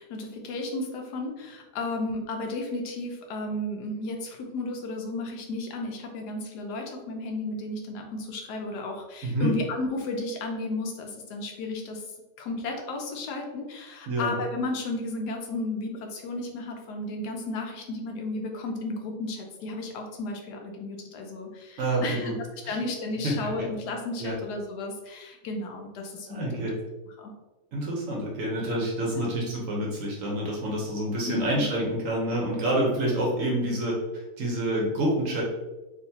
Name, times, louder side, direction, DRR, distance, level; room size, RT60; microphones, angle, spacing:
voice 1, 0.0-12.0 12.4-26.7 27.2-27.3 29.1-29.3 31.2-31.7, left 2 dB, 75° left, 2 dB, 1.1 m, -33 dB
voice 2, 9.2-9.5 14.1-14.3 21.8-22.3 22.6-22.8 23.2-23.6 24.2-24.3 26.3-26.8 27.7-34.0 34.4-35.4, right 1 dB, 60° right, -2 dB, 1.0 m, -27 dB
3.8 x 2.5 x 2.7 m, 1.1 s
omnidirectional pair, 1.8 m